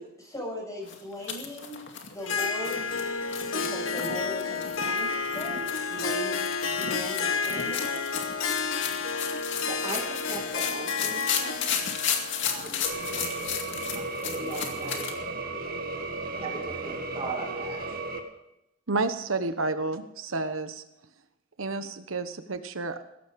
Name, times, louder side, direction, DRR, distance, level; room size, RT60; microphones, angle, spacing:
voice 1, 0.0-1.8 2.1-2.9 3.5-8.0, equal, 15° left, -1 dB, 7.0 m, -38 dB
sound 1, 0.9-15.1, left 7 dB, 65° left, 2.3 m, -34 dB
Harp, 2.2-14.1, left 5 dB, 80° left, 1.7 m, -31 dB
voice 2, 9.7-11.7 12.4-12.9 13.9-15.1 16.3-18.0, right 3 dB, 30° right, 0 dB, 2.4 m, -38 dB
sound 2, 12.8-18.2, right 3 dB, 45° right, 2.1 m, -34 dB
voice 3, 18.9-20.8 21.6-23.0, right 3 dB, 80° right, 9 dB, 1.2 m, -30 dB
16.5 x 14.5 x 5.3 m, 0.87 s
head